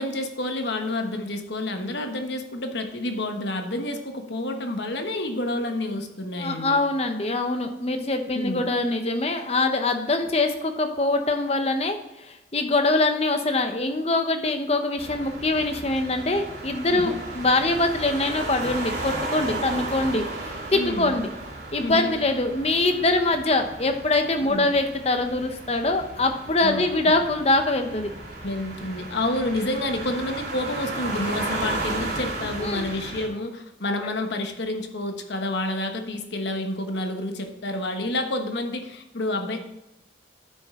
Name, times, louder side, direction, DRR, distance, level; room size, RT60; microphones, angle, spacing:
voice 1, 0.0-6.8 8.3-8.7 16.9-17.2 20.7-21.1 21.8-22.2 24.4-24.7 26.6-27.2 28.4-39.6, left 1 dB, 65° left, 5 dB, 1.1 m, -29 dB
voice 2, 6.4-20.2 20.7-21.3 21.7-28.1 32.6-32.9, left 2 dB, 35° left, 6 dB, 0.9 m, -23 dB
sound 1, 15.0-33.3, right 2 dB, 60° right, 2.5 m, -34 dB
9.9 x 6.5 x 3.7 m, 0.92 s
head